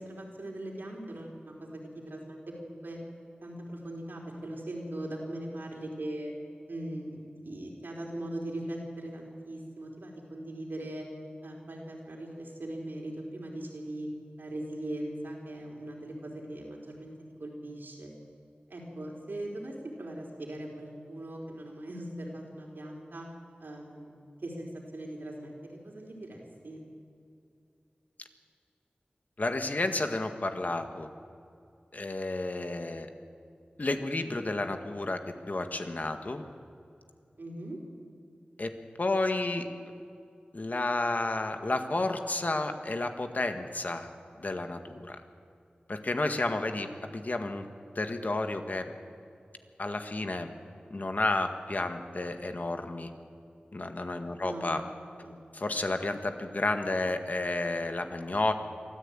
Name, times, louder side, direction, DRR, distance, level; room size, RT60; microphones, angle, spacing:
voice 1, 0.0-3.0 3.4-6.3 6.7-11.1 11.4-14.1 14.4-17.1 17.4-18.1 18.7-23.3 23.6-24.1 24.4-26.8 37.4-37.8 54.4-55.4, right 1 dB, 80° right, -1 dB, 4.4 m, -40 dB
voice 2, 29.4-31.1 31.9-33.1 33.8-35.2 35.5-36.4 38.6-39.7 40.5-44.1 44.4-45.2 45.9-47.7 47.9-48.9 49.8-50.5 50.9-53.1 53.7-54.8 55.5-58.5, left 2 dB, 55° left, 6 dB, 1.7 m, -31 dB
24.0 x 14.0 x 8.9 m, 2.5 s
wide cardioid pair, 65°, 3 cm